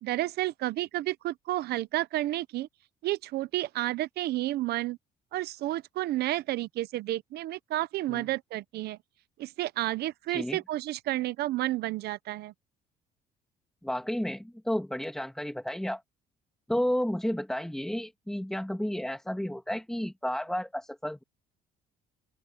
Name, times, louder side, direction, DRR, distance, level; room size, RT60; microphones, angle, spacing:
voice 1, 0.0-2.7 3.0-5.0 5.3-9.0 9.4-12.5, right 16 dB, 70° right, 0.8 m, -31 dB
voice 2, 10.3-10.6 13.8-16.0 16.7-21.2, equal, 5° left, 2.1 m, -32 dB
open air
cardioid pair, 110°, 17 cm